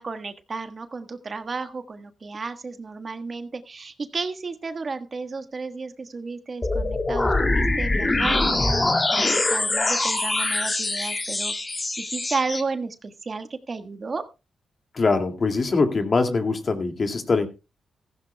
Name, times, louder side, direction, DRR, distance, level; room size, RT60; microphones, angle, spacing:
voice 1, 0.0-14.2, right 4 dB, 45° right, 9 dB, 1.4 m, -33 dB
sound 1, 6.6-12.6, left 2 dB, 30° left, 2.5 m, -23 dB
voice 2, 14.9-17.5, left 4 dB, 50° left, 6 dB, 2.2 m, -22 dB
15.5 x 15.0 x 2.2 m, 0.28 s
cardioid pair, 65°, 0 cm